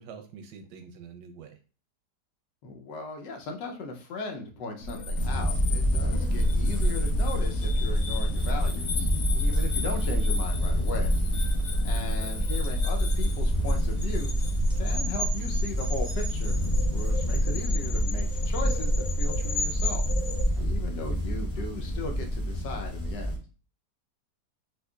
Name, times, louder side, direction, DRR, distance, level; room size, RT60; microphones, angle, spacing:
voice 1, 0.0-1.6 11.5-11.8, right 6 dB, 85° right, 6 dB, 1.2 m, -46 dB
voice 2, 2.6-11.5 11.8-14.3 14.8-16.6 16.9-20.1 20.6-23.4, left 3 dB, 90° left, 2 dB, 1.4 m, -38 dB
sound 1, 4.8-20.5, left 1 dB, 65° left, 1.1 m, -29 dB
sound 2, 5.1-23.4, equal, 20° left, 0.3 m, -29 dB
4.5 x 2.4 x 2.3 m, 0.35 s
omnidirectional pair, 1.8 m